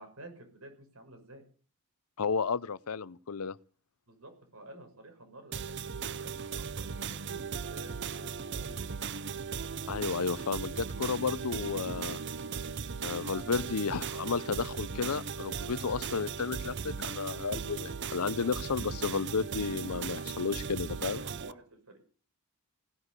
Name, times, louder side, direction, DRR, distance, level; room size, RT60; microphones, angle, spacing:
voice 1, 0.0-1.4 4.1-8.8 21.2-22.0, right 2 dB, 75° right, 6.3 m, -51 dB
voice 2, 2.2-3.6 9.9-12.2 13.0-21.2, left 5 dB, 75° left, 0.7 m, -32 dB
sound 1, 5.5-21.5, right 6 dB, 50° right, 0.7 m, -37 dB
17.5 x 9.8 x 8.2 m
head